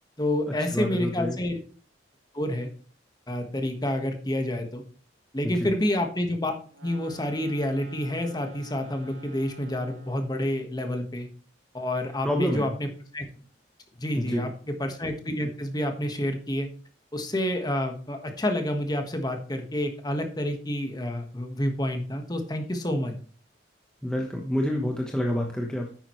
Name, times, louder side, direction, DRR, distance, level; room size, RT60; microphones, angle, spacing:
voice 1, 0.2-1.6 2.3-2.7 3.3-4.8 5.3-6.6 6.8-11.3 11.7-13.3 14.0-16.7 17.1-23.1, left 1 dB, 20° left, 5 dB, 1.5 m, -28 dB
voice 2, 0.7-1.4 5.6-5.7 12.2-12.7 14.2-14.5 24.0-25.9, left 1 dB, 5° left, 0 dB, 1.0 m, -27 dB
sound 1, 6.7-10.3, equal, 80° right, 4.2 m, -46 dB
10.0 x 8.8 x 3.2 m, 0.41 s
head